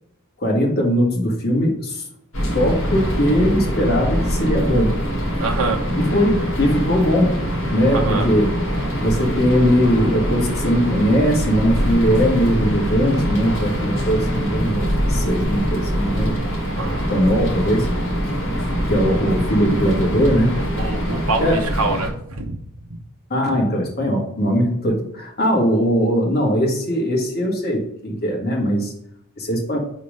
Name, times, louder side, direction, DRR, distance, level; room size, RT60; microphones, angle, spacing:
voice 1, 0.4-2.0 2.5-5.0 6.0-7.4 7.7-8.5 9.0-16.3 17.1-17.9 18.9-20.6 21.4-21.6 23.3-28.9 29.4-29.8, equal, 45° left, 0 dB, 1.7 m, -20 dB
sound 1, 2.3-22.1, equal, 65° left, 1.8 m, -23 dB
voice 2, 5.4-5.8 7.9-8.3 16.8-17.1 20.8-22.6, right 3 dB, 75° right, 2 dB, 0.9 m, -24 dB
5.1 x 4.2 x 5.3 m, 0.72 s
head